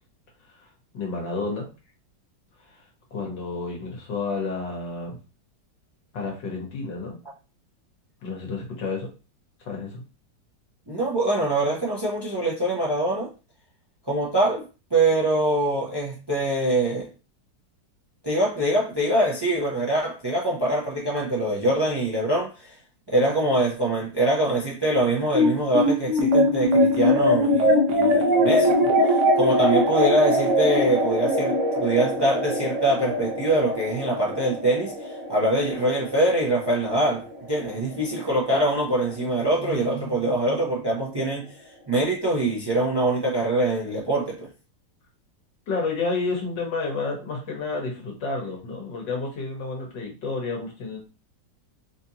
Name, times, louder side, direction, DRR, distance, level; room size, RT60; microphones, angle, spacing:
voice 1, 0.9-1.7 3.1-5.2 6.1-7.2 8.2-9.1 9.7-10.0 45.7-51.0, left 3 dB, 80° left, 2.0 m, -30 dB
voice 2, 10.9-13.3 14.1-14.6 14.9-17.1 18.2-22.8 23.1-41.5 41.9-44.5, right 1 dB, 35° right, 0.4 m, -24 dB
sound 1, 25.3-38.0, equal, 55° right, 0.8 m, -22 dB
4.2 x 2.7 x 2.8 m
omnidirectional pair, 1.9 m